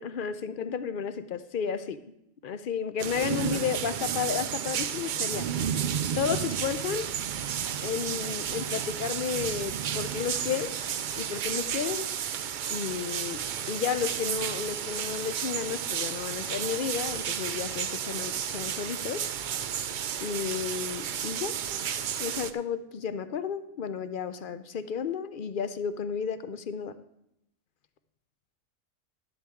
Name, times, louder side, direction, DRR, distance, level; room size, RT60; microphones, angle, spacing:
voice 1, 0.0-2.0 2.4-5.5 6.1-7.1 7.8-10.7 11.2-12.1 12.7-19.3 20.2-21.6 22.2-27.0, left 7 dB, 55° left, 12 dB, 0.6 m, -32 dB
sound 1, 3.0-22.5, right 9 dB, 75° right, 0.4 m, -32 dB
12.5 x 10.5 x 3.6 m, 0.82 s
omnidirectional pair, 1.4 m